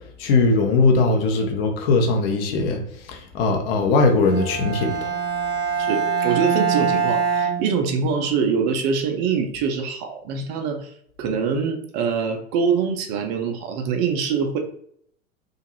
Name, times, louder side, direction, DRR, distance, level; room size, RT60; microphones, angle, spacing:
voice 1, 0.2-2.8 3.1-5.1, left 3 dB, 50° left, 3 dB, 0.7 m, -20 dB
Bowed string instrument, 4.2-8.3, right 6 dB, 65° right, 0.7 m, -24 dB
voice 2, 5.8-10.9 11.2-14.6, right 6 dB, 30° right, 4 dB, 0.3 m, -24 dB
2.5 x 2.3 x 2.9 m, 0.67 s
figure-of-eight pair, 90°, 38 cm